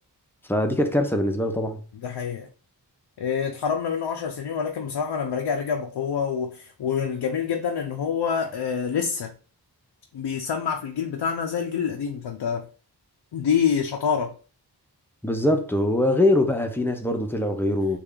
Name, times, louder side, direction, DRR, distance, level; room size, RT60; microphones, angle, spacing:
voice 1, 0.5-1.8 15.2-18.0, left 1 dB, 5° left, 0.6 m, -22 dB
voice 2, 2.0-2.5 3.2-9.3 10.1-12.7 13.3-14.4 16.0-16.2, left 7 dB, 85° left, 0.5 m, -27 dB
3.3 x 2.4 x 3.7 m
wide cardioid pair, 80°, 40 cm